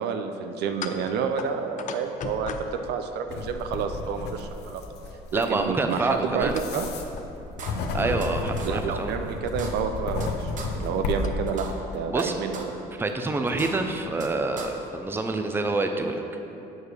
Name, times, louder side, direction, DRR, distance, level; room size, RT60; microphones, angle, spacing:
voice 1, 0.0-4.8 5.3-6.9 7.9-8.2 8.6-12.7, right 6 dB, 80° right, 7 dB, 0.5 m, -29 dB
sound 1, 0.7-3.7 6.5-6.8 7.2-7.3 7.8-8.6 11.2-11.3 12.3-12.4 12.7-12.8 13.5-14.1, left 6 dB, 50° left, 0.5 m, -39 dB
sound 2, 3.3-11.3, left 3 dB, 75° left, 0.8 m, -33 dB
voice 2, 5.3-6.5 7.9-9.1 12.1-12.3 13.0-16.2, right 3 dB, 15° right, 5 dB, 0.5 m, -27 dB
sound 3, 7.1-7.2 7.6-8.3 8.6-8.7 9.1-9.2 9.5-10.3 10.6-10.7 11.1-11.2 11.5-12.3 12.5-12.6 13.1-13.2 13.5-14.3 14.6-14.7, right 5 dB, 50° right, 0.9 m, -38 dB
8.1 x 4.8 x 4.8 m, 2.9 s
cardioid pair, 110°, 17 cm